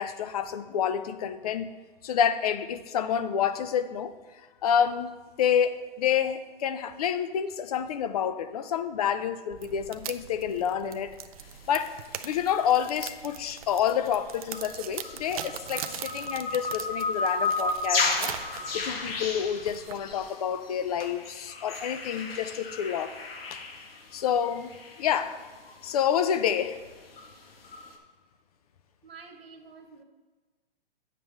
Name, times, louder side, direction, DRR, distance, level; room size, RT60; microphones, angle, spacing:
voice 1, 0.0-1.7 2.0-4.1 4.6-11.2 11.7-18.4 18.7-23.1 23.5-23.6 24.1-24.7 25.0-25.5 25.8-26.8, left 8 dB, 40° left, 12 dB, 0.5 m, -28 dB
sound 1, 9.5-20.3, right 10 dB, 40° right, 0.4 m, -42 dB
sound 2, 11.4-13.2 13.8-28.0, left 3 dB, 80° left, 1.4 m, -34 dB
voice 2, 29.0-30.0, right 5 dB, 90° right, 4 dB, 1.5 m, -48 dB
9.0 x 7.5 x 3.3 m, 1.3 s
hypercardioid pair, 145°, 29 cm